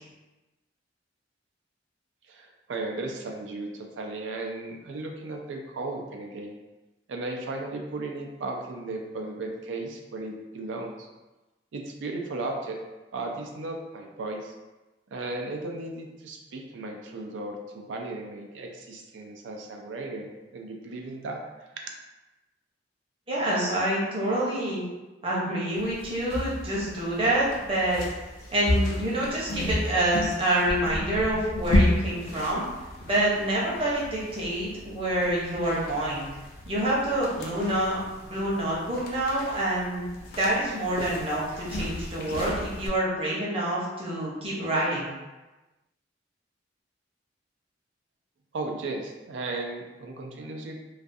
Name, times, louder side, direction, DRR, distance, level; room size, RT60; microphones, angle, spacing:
voice 1, 2.3-6.6 7.1-11.1 11.7-12.8 13.1-14.5 15.1-21.7 48.5-50.8, right 2 dB, 90° right, 2 dB, 0.4 m, -35 dB
voice 2, 23.3-24.8 25.2-28.0 28.5-32.6 33.0-36.3 36.7-40.1 40.4-45.1, right 1 dB, 30° right, -5 dB, 0.7 m, -27 dB
sound 1, 25.7-42.9, left 1 dB, 55° left, 0.4 m, -32 dB
2.4 x 2.3 x 2.6 m, 1.1 s
head